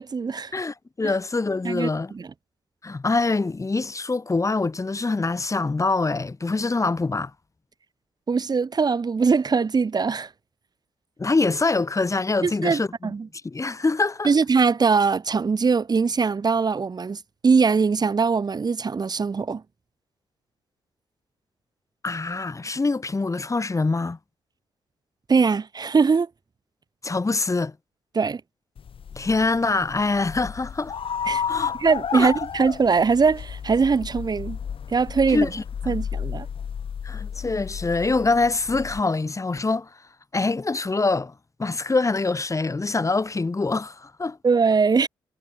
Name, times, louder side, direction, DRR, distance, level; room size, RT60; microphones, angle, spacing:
voice 1, 0.0-0.5 1.6-2.3 8.3-10.3 12.4-13.3 14.2-19.6 25.3-26.3 28.1-28.4 31.3-31.4 31.8-34.6 34.9-35.5 35.9-36.5 44.4-45.1, right 5 dB, 40° right, 1.6 m, -21 dB
voice 2, 0.5-2.1 2.8-7.3 11.2-13.1 13.4-14.3 22.0-24.2 27.0-27.7 29.1-31.0 31.5-31.7 32.1-32.3 35.3-36.0 37.0-39.9 40.3-41.3 41.6-44.4, left 3 dB, 30° left, 4.2 m, -24 dB
sound 1, 28.8-39.0, left 7 dB, 60° left, 5.4 m, -32 dB
hypercardioid pair, 45°, 11 cm